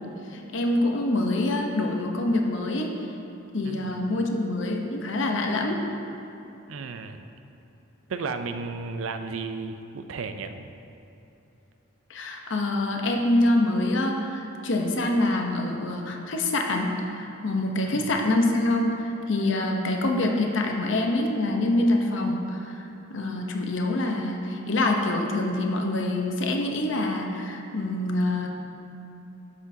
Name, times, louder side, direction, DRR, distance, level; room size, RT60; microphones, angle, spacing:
voice 1, 0.0-2.9 3.5-5.8 12.1-28.5, left 1 dB, 65° left, 2 dB, 0.8 m, -25 dB
voice 2, 6.7-7.3 8.1-10.7 17.8-18.1, right 4 dB, 75° right, 8 dB, 0.4 m, -34 dB
11.5 x 6.3 x 2.7 m, 2.9 s
head